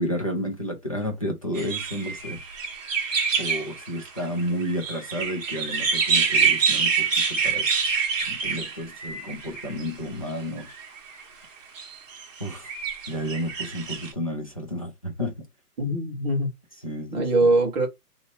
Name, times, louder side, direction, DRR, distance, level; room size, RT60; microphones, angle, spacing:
voice 1, 0.0-2.4 3.4-7.7 8.3-10.7 12.4-12.7 13.1-15.3 16.8-17.2, equal, 25° left, 0.4 m, -31 dB
sound 1, 1.5-9.9 10.6-11.2 11.8-14.1, right 5 dB, 55° right, 1.3 m, -26 dB
voice 2, 15.8-16.5 17.1-17.9, right 2 dB, 30° right, 1.1 m, -22 dB
2.9 x 2.8 x 4.1 m
hypercardioid pair, 160°, 47 cm